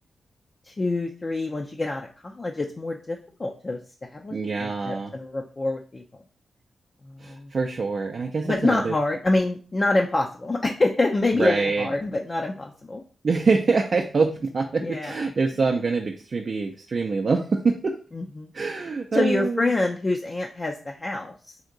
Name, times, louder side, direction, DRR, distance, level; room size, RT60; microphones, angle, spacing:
voice 1, 0.6-3.8 4.1-6.0 7.0-7.5 8.4-13.0 14.8-15.1 18.1-18.5 19.1-21.3, left 2 dB, 40° left, 1 dB, 0.4 m, -26 dB
voice 2, 4.3-5.1 7.2-8.9 11.3-11.9 13.2-18.0 18.5-19.7, right 4 dB, 55° right, 2 dB, 0.4 m, -25 dB
2.8 x 2.5 x 3.7 m, 0.39 s
cardioid pair, 50°, 0 cm